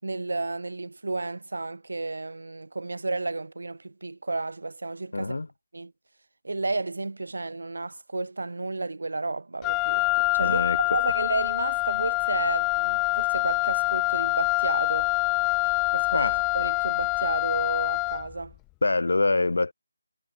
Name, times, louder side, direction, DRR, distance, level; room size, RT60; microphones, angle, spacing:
voice 1, 0.0-5.3 5.7-5.9 6.4-15.1 15.9-16.3 16.5-18.5, right 2 dB, 70° right, 6.6 m, -32 dB
voice 2, 5.1-5.5 10.4-11.0 16.1-16.4 18.8-19.7, left 3 dB, 70° left, 7.5 m, -25 dB
Wind instrument woodwind instrument, 9.6-18.3, left 26 dB, 15° left, 0.8 m, -25 dB
figure-of-eight pair, 160°, 0 cm